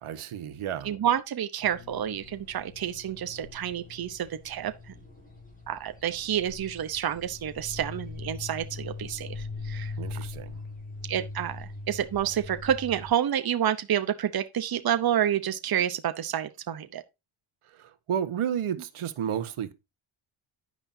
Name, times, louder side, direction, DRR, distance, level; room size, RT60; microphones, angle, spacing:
voice 1, 0.0-0.9 10.0-10.6 17.7-19.7, right 9 dB, 90° right, 1.5 m, -32 dB
voice 2, 0.8-4.7 5.7-9.9 11.1-17.0, right 10 dB, 45° right, 1.0 m, -29 dB
sound 1, 1.6-13.1, left 3 dB, 15° left, 6.8 m, -41 dB
10.0 x 9.8 x 2.8 m
wide cardioid pair, 150°, 49 cm